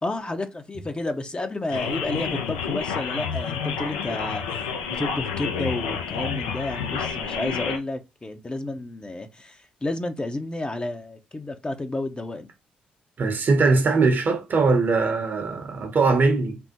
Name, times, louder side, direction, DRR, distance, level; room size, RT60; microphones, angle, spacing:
voice 1, 0.0-12.5, left 2 dB, 25° left, 0.6 m, -31 dB
sound 1, 1.7-7.8, left 6 dB, 85° left, 0.4 m, -29 dB
voice 2, 13.2-16.6, right 3 dB, 50° right, 0.8 m, -21 dB
3.4 x 2.0 x 2.9 m
hypercardioid pair, 45°, 4 cm